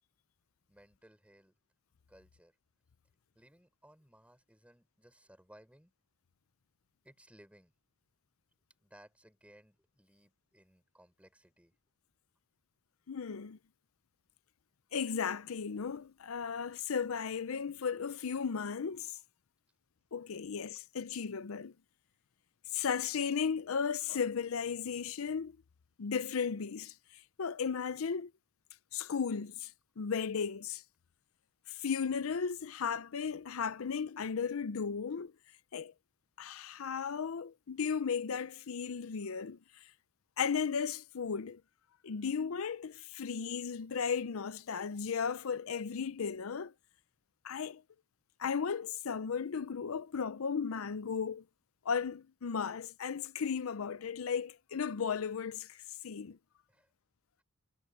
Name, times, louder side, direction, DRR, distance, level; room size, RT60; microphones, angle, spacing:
voice 1, 0.7-1.6 2.1-2.6 3.3-5.9 7.0-7.7 8.8-11.7 56.7-56.9, right 1 dB, 5° right, 6.0 m, -61 dB
voice 2, 13.1-13.6 14.9-19.2 20.1-21.7 22.7-25.5 26.0-26.9 27.4-28.3 28.9-29.7 30.0-30.8 31.8-35.3 35.7-35.9 36.4-39.6 40.4-41.6 42.0-46.7 47.4-47.8 48.4-51.4 51.9-55.8 56.0-56.4, left 6 dB, 85° left, 0.6 m, -35 dB
head